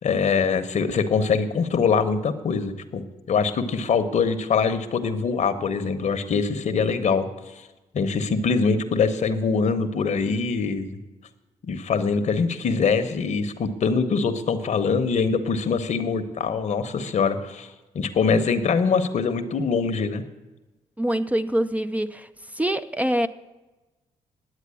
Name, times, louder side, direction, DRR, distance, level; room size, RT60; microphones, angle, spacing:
voice 1, 0.0-7.3 7.9-11.0 11.6-17.7 17.9-20.2, left 5 dB, 60° left, 1.1 m, -23 dB
voice 2, 21.0-22.3 22.5-23.3, right 1 dB, 10° right, 0.5 m, -24 dB
11.0 x 8.1 x 8.4 m
cardioid pair, 65°, 13 cm